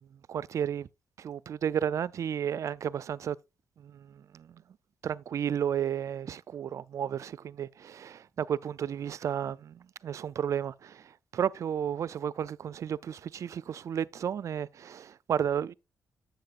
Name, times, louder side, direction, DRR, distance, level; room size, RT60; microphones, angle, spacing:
voice 1, 0.1-0.9 1.2-3.4 3.8-4.6 5.0-15.7, right 9 dB, 55° right, 0.4 m, -33 dB
11.5 x 7.7 x 2.5 m
cardioid pair, 85°, 6 cm